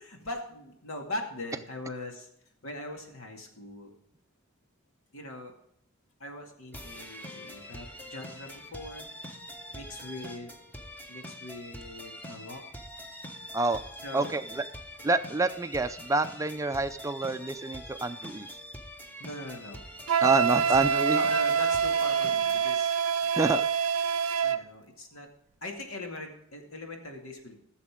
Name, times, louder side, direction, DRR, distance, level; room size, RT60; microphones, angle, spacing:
voice 1, 0.0-2.3 2.6-3.9 5.1-5.5 6.2-9.1 9.7-10.6 11.1-12.6 14.0-14.3 19.2-19.8 21.1-22.9 24.4-25.3 25.6-27.6, left 2 dB, 80° left, 2 dB, 2.3 m, -40 dB
sound 1, 6.7-22.7, equal, 10° left, 1.2 m, -44 dB
voice 2, 14.1-14.6 15.0-18.5 20.2-21.2 23.2-23.6, right 2 dB, 15° right, 10 dB, 0.4 m, -28 dB
Wind instrument woodwind instrument, 20.1-24.6, right 7 dB, 85° right, 0.6 m, -26 dB
15.0 x 7.3 x 3.7 m, 0.71 s
head